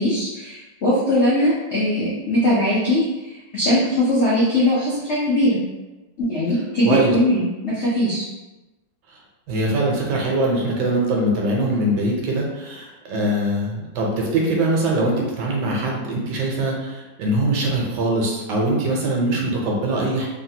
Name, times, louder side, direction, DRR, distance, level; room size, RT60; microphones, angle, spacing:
voice 1, 0.0-3.0 3.5-5.6 6.2-8.3, left 1 dB, 85° left, -8 dB, 0.6 m, -20 dB
voice 2, 6.8-7.2 9.1-9.2 9.5-20.3, right 1 dB, 75° right, -1 dB, 1.2 m, -22 dB
3.2 x 2.1 x 2.7 m, 1.1 s
omnidirectional pair, 2.0 m